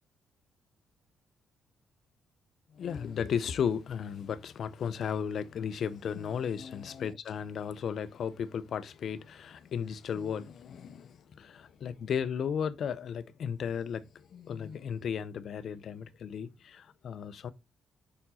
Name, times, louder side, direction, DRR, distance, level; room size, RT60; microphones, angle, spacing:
voice 1, 2.7-17.5, left 7 dB, 60° left, 0.5 m, -35 dB
5.3 x 4.4 x 4.2 m
cardioid pair, 110°, 0 cm